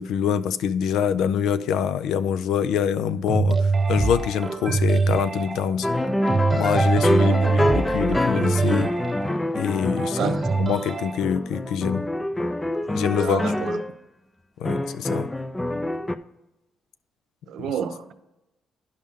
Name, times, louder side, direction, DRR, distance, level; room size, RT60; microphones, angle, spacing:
voice 1, 0.0-3.6 3.9-5.9 6.5-8.9 9.6-10.3 10.6-12.1 12.9-13.4 14.6-15.3, left 8 dB, 85° left, 0.3 m, -25 dB
sound 1, 3.3-11.2, right 4 dB, 35° right, 1.2 m, -24 dB
sound 2, 5.8-10.9 11.2-13.9 14.7-16.2, left 1 dB, 15° left, 0.4 m, -26 dB
voice 2, 7.2-7.5 10.2-10.4 13.2-13.8 17.5-18.1, right 8 dB, 80° right, 0.6 m, -30 dB
10.5 x 5.4 x 3.6 m
cardioid pair, 90°, 0 cm